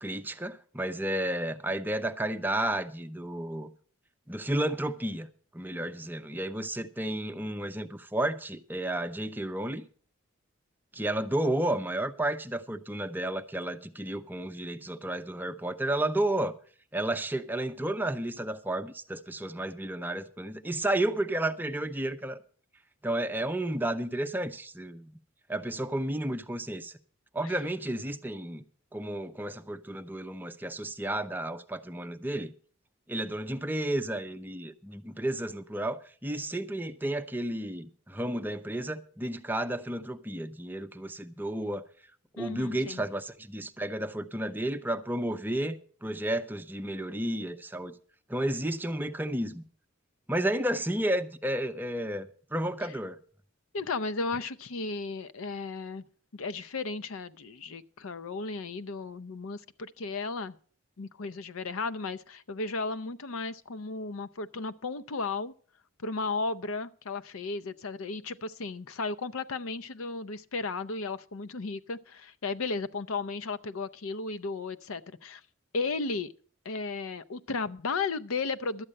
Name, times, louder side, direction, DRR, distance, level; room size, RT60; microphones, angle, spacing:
voice 1, 0.0-3.7 4.3-5.3 5.5-9.8 10.9-16.6 16.9-22.4 23.0-25.1 25.5-26.9 27.3-28.6 28.9-32.5 33.1-41.8 42.3-47.9 48.3-49.6 50.3-53.2, right 1 dB, 10° right, 0.6 m, -32 dB
voice 2, 42.4-43.0 53.7-56.0 56.3-60.5 61.0-65.5 66.0-75.4 75.7-76.3 76.6-78.8, left 3 dB, 80° left, 0.6 m, -34 dB
12.0 x 8.8 x 6.5 m
head